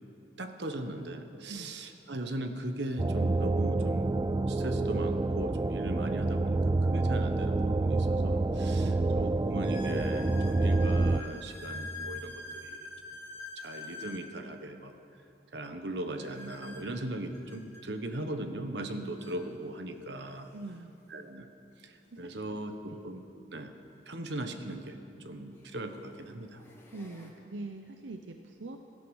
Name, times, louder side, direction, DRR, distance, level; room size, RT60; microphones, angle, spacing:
voice 1, 0.4-12.9 13.6-14.9 15.5-20.5 21.1-21.5 21.8-23.2 23.5-23.7 24.1-26.6, right 1 dB, 70° right, 7 dB, 1.2 m, -39 dB
sound 1, 3.0-11.2, right 2 dB, 20° right, 0.3 m, -28 dB
sound 2, 7.9-8.0 8.6-8.7 9.6-14.3 16.2-17.8 18.8-18.9 19.2-19.4 20.2-20.3 22.5-22.6 24.7-24.8 25.5-25.8 26.3-27.3, left 3 dB, 15° left, 1.9 m, -45 dB
voice 2, 20.5-21.0 22.1-22.5 22.9-23.0 26.9-28.8, right 2 dB, 90° right, 5 dB, 0.8 m, -43 dB
17.0 x 13.5 x 6.4 m, 2.7 s
head